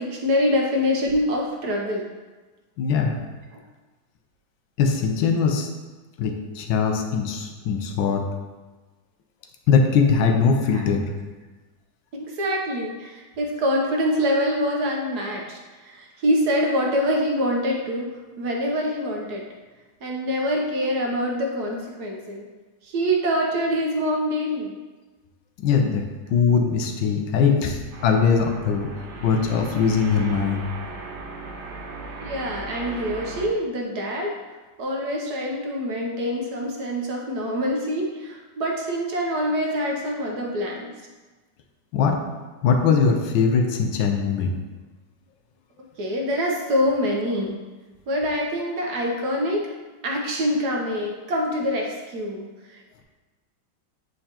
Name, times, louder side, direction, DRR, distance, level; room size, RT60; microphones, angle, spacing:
voice 1, 0.0-2.1 10.7-10.9 12.1-15.6 15.9-19.4 20.0-22.5 22.9-24.7 32.2-34.3 34.8-40.9 46.0-47.6 48.1-49.6 50.0-52.4, equal, 60° right, 0 dB, 1.2 m, -25 dB
voice 2, 2.8-3.2 4.8-5.7 6.2-8.2 9.7-11.1 25.6-26.0 26.3-28.9 29.2-30.7 41.9-42.2 42.6-44.5, left 5 dB, 80° left, 4 dB, 1.5 m, -21 dB
sound 1, 27.9-33.5, right 3 dB, 85° right, 1.8 m, -37 dB
8.8 x 4.5 x 2.9 m, 1.2 s
omnidirectional pair, 2.2 m